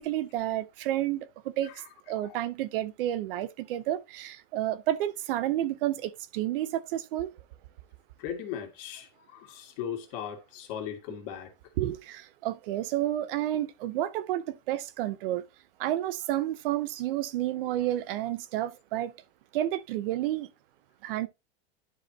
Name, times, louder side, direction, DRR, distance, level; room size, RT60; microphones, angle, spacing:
voice 1, 0.0-1.7 2.1-7.3 11.8-15.4 15.8-19.1 19.5-20.5 21.0-21.3, right 13 dB, 70° right, 0.9 m, -30 dB
voice 2, 8.2-11.5, left 9 dB, 55° left, 2.2 m, -38 dB
11.0 x 4.9 x 2.8 m
supercardioid pair, 145°, 29 cm